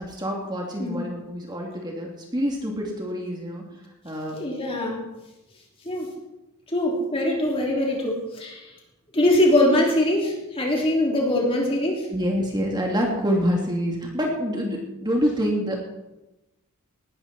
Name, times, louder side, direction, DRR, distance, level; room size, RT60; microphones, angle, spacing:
voice 1, 0.0-3.6 4.0-4.4 12.1-15.8, equal, 20° right, -1 dB, 2.7 m, -26 dB
voice 2, 4.3-5.1 5.8-6.1 6.7-8.7 9.1-12.1, left 1 dB, 25° left, -1 dB, 3.2 m, -22 dB
19.0 x 13.0 x 4.3 m, 0.99 s
head